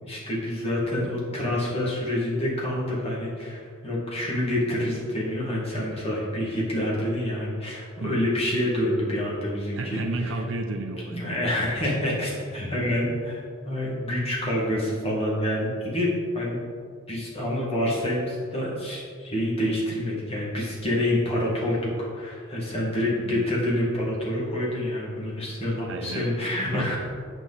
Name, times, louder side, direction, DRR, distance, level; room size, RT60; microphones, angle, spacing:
voice 1, 0.0-10.4 11.1-16.6 17.1-27.0, left 1 dB, 30° left, -5 dB, 1.9 m, -27 dB
voice 2, 9.8-11.2 23.1-23.5 25.9-27.0, right 2 dB, 60° right, 5 dB, 0.6 m, -32 dB
8.3 x 5.9 x 4.1 m, 2.2 s
head